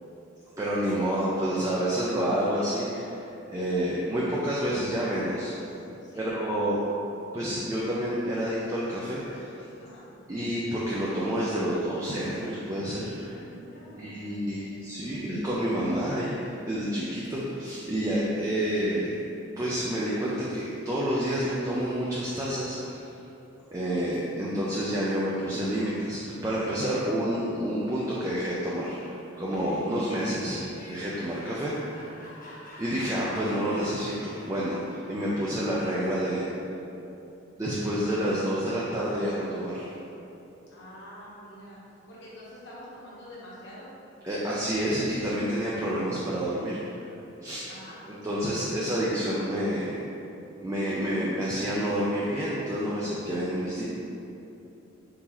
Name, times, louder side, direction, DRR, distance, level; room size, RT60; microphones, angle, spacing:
voice 1, 0.6-3.1 3.5-5.5 6.1-6.8 7.3-9.5 10.3-13.4 14.0-19.1 19.6-23.1 23.7-30.6 30.9-31.8 32.8-36.5 37.6-39.9 44.2-47.1 47.4-47.6 48.1-50.0 50.6-53.8, equal, 15° right, -7 dB, 0.4 m, -29 dB
voice 2, 6.0-6.4 9.8-10.1 13.2-14.6 15.0-15.2 40.7-41.8 42.1-43.9 47.7-48.0, equal, 60° left, -7 dB, 1.1 m, -46 dB
Laughter, 29.3-34.7, left 1 dB, 40° left, 0.8 m, -48 dB
4.1 x 3.7 x 2.9 m, 2.8 s
head